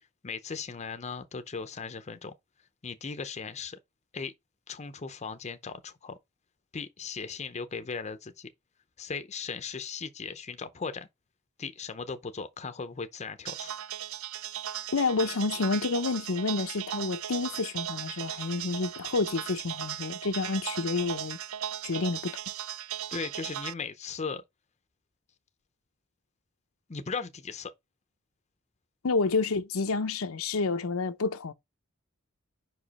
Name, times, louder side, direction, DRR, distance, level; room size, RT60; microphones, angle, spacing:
voice 1, 0.2-2.3 2.8-3.8 4.1-4.3 4.7-6.2 6.7-8.5 9.0-11.1 11.6-13.7 23.1-24.4 26.9-27.7, left 5 dB, 35° left, 0.6 m, -37 dB
sound 1, 13.5-23.7, right 11 dB, 80° right, 0.4 m, -37 dB
voice 2, 14.9-21.4 21.8-22.3 29.0-31.5, left 3 dB, 80° left, 0.7 m, -29 dB
5.3 x 5.0 x 4.1 m
head